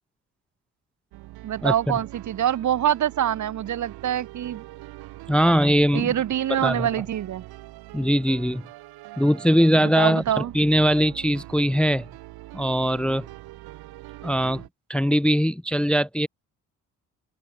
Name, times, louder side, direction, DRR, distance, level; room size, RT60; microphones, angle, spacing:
sound 1, 1.1-14.7, right 18 dB, 75° right, 5.2 m, -43 dB
voice 1, 1.4-4.6 5.9-7.4 9.8-10.5, right 11 dB, 50° right, 0.9 m, -25 dB
voice 2, 5.3-6.1 6.6-6.9 7.9-8.6 9.2-12.1 12.5-13.3 14.2-14.6 14.9-16.3, equal, 5° left, 0.6 m, -21 dB
hypercardioid pair, 45°, 38 cm